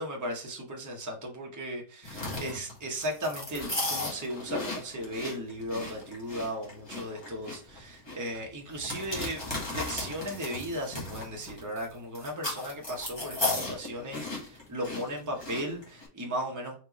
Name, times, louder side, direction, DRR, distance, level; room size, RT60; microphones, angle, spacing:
voice 1, 0.0-16.8, equal, 15° right, 0 dB, 0.7 m, -36 dB
sound 1, 2.0-16.1, left 2 dB, 15° left, 1.2 m, -36 dB
4.2 x 3.4 x 3.0 m, 0.39 s
omnidirectional pair, 1.8 m